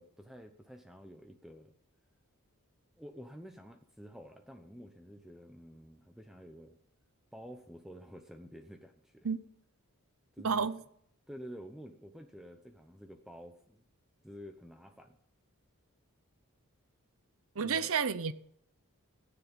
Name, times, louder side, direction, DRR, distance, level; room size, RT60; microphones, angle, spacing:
voice 1, 0.0-1.7 3.0-6.8 7.3-9.3 10.3-10.7 11.3-13.8 14.2-15.2 17.6-17.9, equal, ahead, 0.9 m, -50 dB
voice 2, 10.4-10.8 17.6-18.3, right 6 dB, 65° right, 0.7 m, -30 dB
15.5 x 9.8 x 5.4 m
head